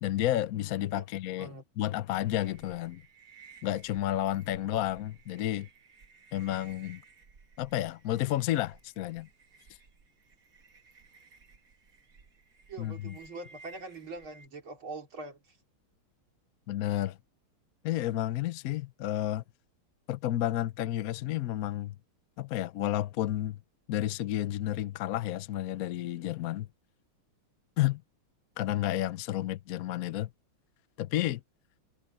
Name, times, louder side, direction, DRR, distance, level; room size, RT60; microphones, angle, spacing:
voice 1, 0.0-3.0 3.6-5.7 6.3-7.0 7.6-9.3 12.8-13.2 16.7-17.2 17.8-19.4 20.1-21.9 22.4-23.6 23.9-26.7 27.8-28.0 28.6-30.3 31.0-31.4, left 13 dB, 75° left, 0.8 m, -31 dB
sound 1, 2.4-14.5, right 4 dB, 45° right, 1.8 m, -57 dB
voice 2, 12.7-15.6, right 3 dB, 70° right, 4.4 m, -43 dB
omnidirectional pair, 2.3 m